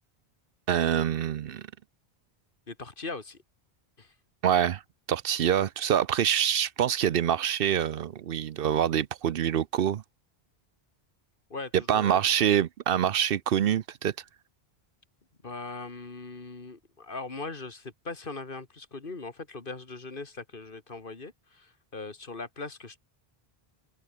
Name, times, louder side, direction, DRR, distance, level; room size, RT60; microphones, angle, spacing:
voice 1, 0.7-1.6 4.4-4.8 5.1-10.0 11.9-14.1, right 9 dB, 70° right, 0.8 m, -25 dB
voice 2, 2.7-3.4 4.0-4.1 11.5-12.2 15.4-23.0, left 3 dB, 60° left, 2.3 m, -40 dB
omnidirectional pair, 1.0 m